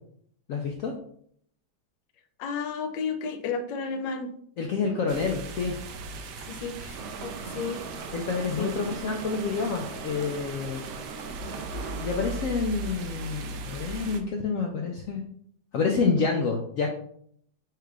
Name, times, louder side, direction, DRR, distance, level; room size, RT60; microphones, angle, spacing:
voice 1, 0.5-0.9 4.6-5.7 8.1-10.8 12.0-15.2 15.7-16.9, left 4 dB, 70° left, 1 dB, 0.7 m, -28 dB
voice 2, 2.4-4.3 6.5-7.8 8.6-8.7, left 5 dB, 90° left, 7 dB, 1.3 m, -32 dB
sound 1, 5.1-14.2, right 2 dB, 75° right, 1.2 m, -38 dB
Subway metro underground, 6.9-12.4, right 4 dB, 55° right, 0.9 m, -40 dB
4.6 x 2.4 x 4.7 m, 0.66 s
omnidirectional pair, 1.9 m